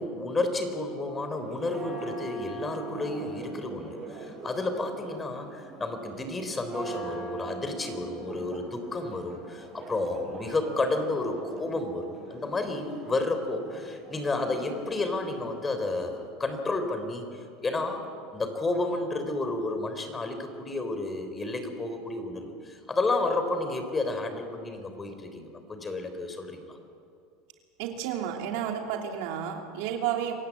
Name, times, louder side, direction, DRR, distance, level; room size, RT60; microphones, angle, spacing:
voice 1, 0.0-26.8, left 2 dB, 20° left, 7 dB, 3.8 m, -31 dB
Church bell, 1.3-16.3, right 4 dB, 30° right, 6.4 m, -42 dB
voice 2, 27.8-30.3, right 9 dB, 70° right, 2 dB, 2.9 m, -31 dB
26.5 x 16.0 x 8.4 m, 2.4 s
hypercardioid pair, 100°, 0 cm